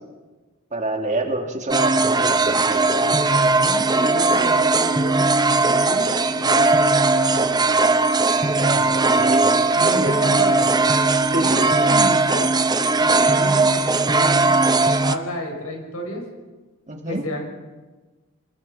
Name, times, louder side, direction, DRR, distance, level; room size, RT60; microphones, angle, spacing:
voice 1, 0.7-3.2 8.4-9.5 9.8-10.1 11.3-11.7 16.9-17.2, right 2 dB, 35° right, 2 dB, 3.0 m, -27 dB
sound 1, 1.7-15.2, right 3 dB, 20° right, 0.9 m, -18 dB
voice 2, 3.0-6.1 6.4-7.5 9.7-10.7 11.3-11.5 11.8-12.6 13.0-14.5 15.0-16.2 17.1-17.4, equal, 85° left, 2 dB, 7.1 m, -31 dB
27.0 x 21.0 x 5.9 m, 1.2 s
head